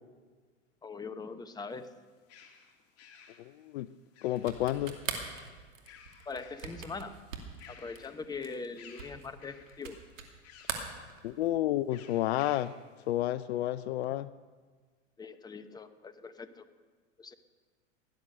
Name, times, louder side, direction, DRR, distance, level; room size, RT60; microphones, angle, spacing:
voice 1, 0.8-1.9 6.3-7.2 7.7-10.0 15.2-16.6 17.2-17.3, left 4 dB, 10° left, 10 dB, 0.9 m, -42 dB
sound 1, 1.7-4.8 5.7-7.0 7.3-8.4 8.8-9.9 10.4-11.0 11.9-12.9, left 7 dB, 40° left, 2.4 m, -56 dB
voice 2, 4.2-5.0 11.2-12.7 13.1-14.3, left 14 dB, 55° left, 16 dB, 0.5 m, -30 dB
sound 2, 4.4-10.3 10.6-11.6, right 7 dB, 85° right, 2.5 m, -41 dB
17.5 x 11.5 x 6.6 m, 1.5 s
hypercardioid pair, 100°, 39 cm